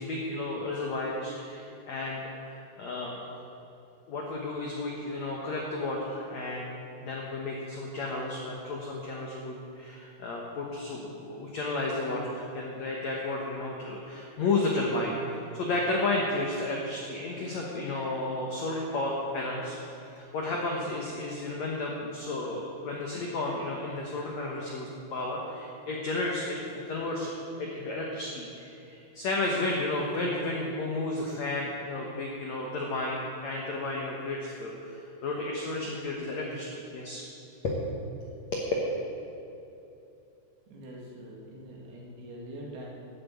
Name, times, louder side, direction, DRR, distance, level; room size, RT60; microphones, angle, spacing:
voice 1, 0.0-3.4 4.1-6.7 7.0-27.3 27.6-35.0 35.2-37.2 37.6-37.8 38.5-38.6, left 2 dB, 75° left, -2 dB, 1.6 m, -32 dB
voice 2, 40.7-42.9, equal, 65° right, -3 dB, 3.8 m, -44 dB
12.0 x 8.1 x 8.4 m, 2.8 s
omnidirectional pair, 5.1 m